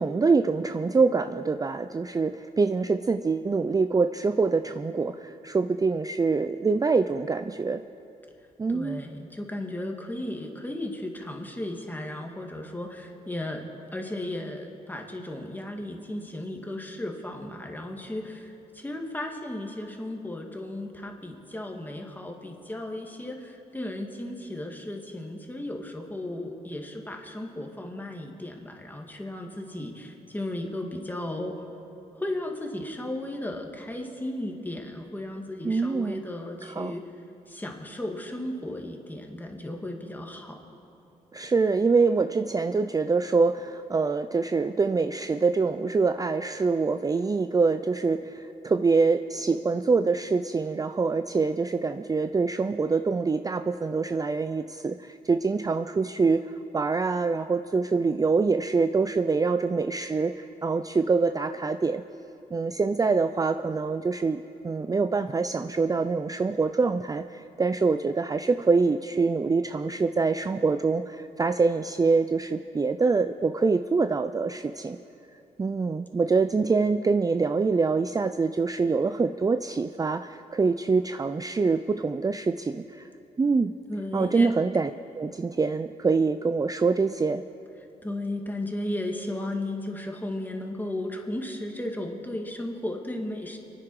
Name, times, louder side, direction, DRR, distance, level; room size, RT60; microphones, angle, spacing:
voice 1, 0.0-7.8 8.6-9.0 35.6-36.2 36.6-36.9 41.3-62.0 62.5-75.0 75.6-83.0 83.4-83.7 84.1-84.9 85.2-87.4, right 4 dB, 25° right, 10 dB, 0.5 m, -25 dB
voice 2, 8.7-31.7 32.1-37.1 37.5-40.6 83.9-84.6 87.8-93.6, left 1 dB, 10° left, 2 dB, 2.2 m, -35 dB
24.5 x 9.7 x 4.8 m, 2.8 s
cardioid pair, 65°, 16 cm